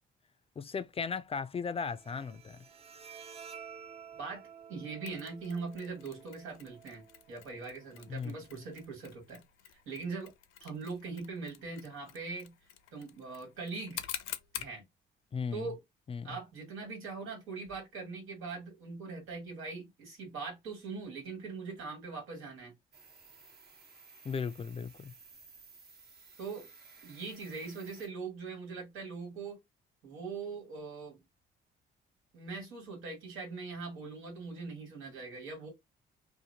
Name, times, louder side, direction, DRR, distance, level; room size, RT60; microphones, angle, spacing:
voice 1, 0.6-2.6 8.1-8.4 15.3-15.7 16.1-16.4 24.2-25.1, left 5 dB, 30° left, 0.3 m, -36 dB
Bowed string instrument, 1.8-8.8, right 7 dB, 30° right, 0.5 m, -52 dB
voice 2, 4.2-9.4 9.9-10.3 10.6-12.5 12.9-14.0 14.5-14.8 15.5-15.8 16.2-22.7 26.4-26.7 27.0-29.6 30.0-31.2 32.3-35.7, right 4 dB, 90° right, 1.9 m, -41 dB
Mechanisms, 5.1-14.8, left 11 dB, 85° left, 0.5 m, -48 dB
sound 1, 22.9-28.1, right 4 dB, 55° right, 1.1 m, -56 dB
2.8 x 2.5 x 2.8 m
cardioid pair, 90°, 20 cm